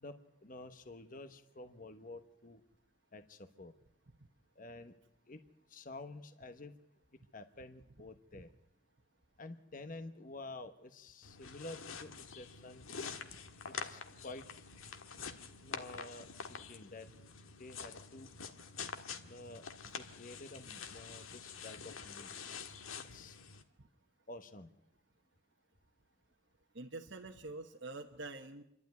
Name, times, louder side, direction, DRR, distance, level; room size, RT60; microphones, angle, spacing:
voice 1, 0.4-2.6 3.1-3.7 4.6-4.9 5.3-5.4 5.7-6.7 7.3-8.5 9.4-12.9 13.7-14.4 15.6-17.1 17.6-18.3 19.2-19.6 20.0-22.3 23.1-23.4 24.3-24.7, left 2 dB, 40° left, 9 dB, 1.1 m, -50 dB
sound 1, 11.2-23.6, left 5 dB, 85° left, 1.6 m, -47 dB
voice 2, 26.7-28.6, right 2 dB, 60° right, 3 dB, 1.1 m, -46 dB
28.0 x 12.0 x 9.4 m, 0.80 s
head